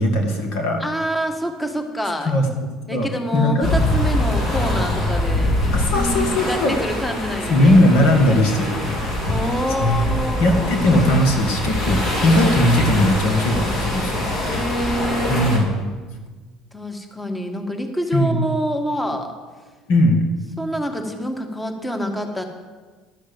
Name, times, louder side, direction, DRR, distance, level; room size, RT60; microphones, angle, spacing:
voice 1, 0.0-0.8 2.2-3.7 5.7-6.8 7.5-8.8 9.8-10.0 10.4-14.2 15.3-15.7 18.1-18.4 19.9-20.2, left 1 dB, 70° left, 4 dB, 1.8 m, -18 dB
voice 2, 0.8-2.4 2.9-7.8 8.2-8.4 9.3-10.7 14.4-15.6 16.7-19.3 20.6-22.4, equal, 10° left, 5 dB, 1.6 m, -26 dB
sound 1, 3.6-15.6, left 1 dB, 50° left, 3.8 m, -23 dB
12.0 x 6.5 x 7.8 m, 1.4 s
hypercardioid pair, 75°, 0 cm